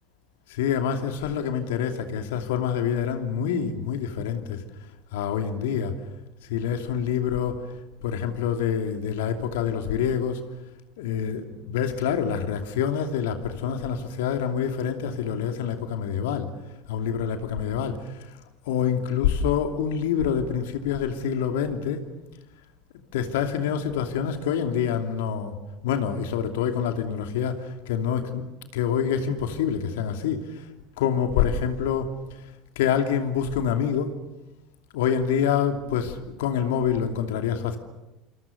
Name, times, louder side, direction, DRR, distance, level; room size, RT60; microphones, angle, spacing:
voice 1, 0.5-4.6 5.1-5.9 6.5-7.6 8.0-10.4 11.0-16.5 16.9-18.3 18.6-22.1 23.1-25.5 25.8-30.6 31.0-32.1 32.8-34.1 34.9-37.8, left 8 dB, 70° left, 6 dB, 2.8 m, -26 dB
27.5 x 27.5 x 6.8 m, 0.98 s
figure-of-eight pair, 70°, 0 cm